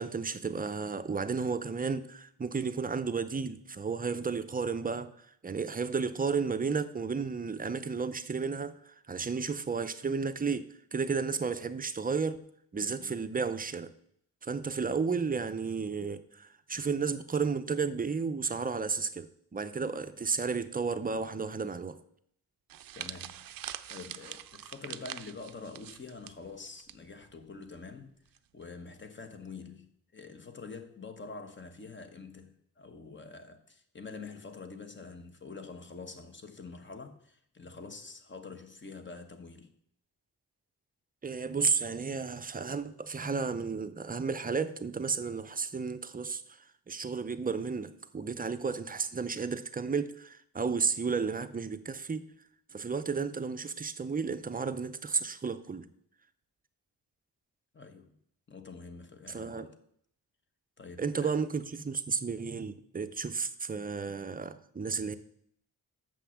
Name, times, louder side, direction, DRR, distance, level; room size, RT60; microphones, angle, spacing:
voice 1, 0.0-12.4 12.7-13.9 14.4-22.0 41.2-52.2 52.7-55.9 59.3-59.7 61.0-65.2, right 5 dB, 25° right, 0.5 m, -33 dB
sound 1, 22.7-27.0 27.2-27.5 28.3-28.6, right 12 dB, 70° right, 0.5 m, -44 dB
voice 2, 22.9-23.5 23.9-28.1 28.5-39.7 57.7-58.2 58.5-59.7 60.8-61.3, left 4 dB, 30° left, 1.1 m, -46 dB
7.1 x 5.8 x 7.1 m
cardioid pair, 110°, 36 cm